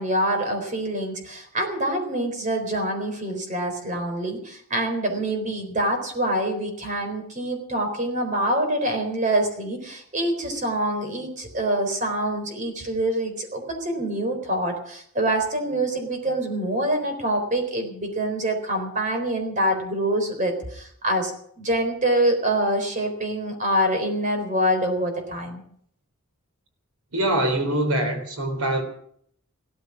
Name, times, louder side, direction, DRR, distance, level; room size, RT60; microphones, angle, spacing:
voice 1, 0.0-21.3 21.6-25.6, right 1 dB, 35° right, 4.0 m, -25 dB
voice 2, 27.1-28.8, right 1 dB, 80° right, 3.8 m, -23 dB
16.5 x 13.5 x 6.1 m
head